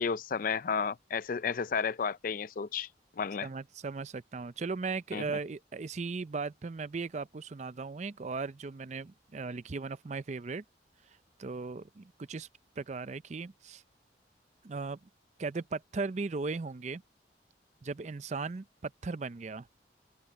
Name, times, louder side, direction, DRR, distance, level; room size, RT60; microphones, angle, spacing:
voice 1, 0.0-2.9 3.2-3.5 5.1-5.2, left 6 dB, 50° left, 0.4 m, -32 dB
voice 2, 3.4-10.6 11.4-12.5 12.8-13.8 14.6-15.0 15.4-17.0 17.8-19.7, right 4 dB, 40° right, 0.5 m, -37 dB
head